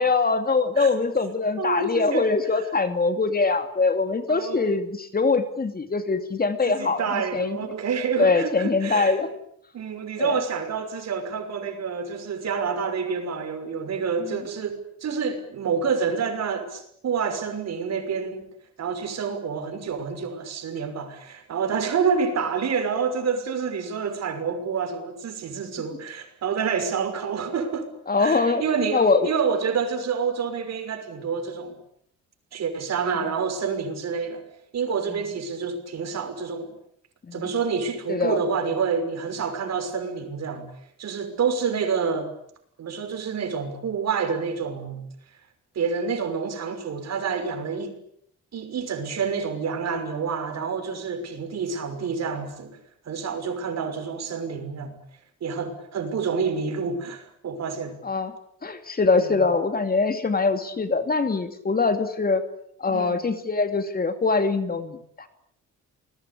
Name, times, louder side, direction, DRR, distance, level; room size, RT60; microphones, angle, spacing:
voice 1, 0.0-7.6 8.2-9.3 10.2-10.4 14.2-14.4 28.1-28.6 28.9-29.3 37.3-37.4 38.1-38.4 58.0-58.3 58.6-62.4 62.8-65.3, left 4 dB, 30° left, 2.8 m, -23 dB
voice 2, 1.6-2.7 4.3-4.7 6.7-9.2 9.7-18.4 18.8-27.9 28.2-31.8 32.5-34.4 34.7-36.7 37.3-40.7 41.0-42.3 42.8-45.1 45.7-48.0 48.5-52.8 53.1-55.0 55.4-58.0 59.1-59.5 62.9-63.3, right 6 dB, 60° right, 6.1 m, -28 dB
29.0 x 21.0 x 8.6 m
cardioid pair, 90°, 30 cm